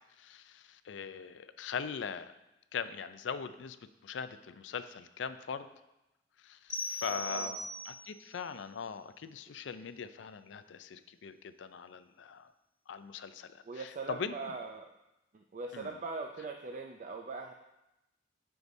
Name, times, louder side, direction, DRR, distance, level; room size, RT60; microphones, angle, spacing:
voice 1, 0.2-2.3 2.7-3.8 4.0-5.7 6.4-7.6 7.9-12.5 12.9-14.3 15.7-15.9, left 6 dB, 75° left, 12 dB, 0.4 m, -41 dB
sound 1, 6.7-8.2, left 2 dB, 20° left, 2.0 m, -39 dB
voice 2, 7.1-7.7 13.7-14.9 15.3-17.5, right 3 dB, 40° right, 3 dB, 0.4 m, -41 dB
13.0 x 4.7 x 2.7 m, 0.95 s
head